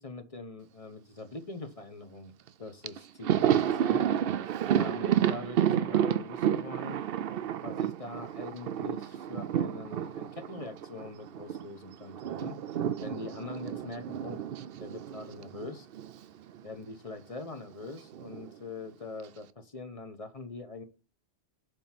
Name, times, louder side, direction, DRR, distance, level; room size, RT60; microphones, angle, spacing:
voice 1, 0.0-2.3 2.6-4.0 4.8-7.0 7.6-12.6 13.0-14.4 14.8-15.9 16.6-20.8, left 3 dB, 30° left, 7 dB, 1.0 m, -43 dB
Thunder, 2.5-2.6 2.8-11.7 11.9-16.2 16.5-16.7 17.8-18.5, right 10 dB, 60° right, 0.7 m, -30 dB
7.5 x 3.6 x 5.8 m, 0.32 s
omnidirectional pair, 1.2 m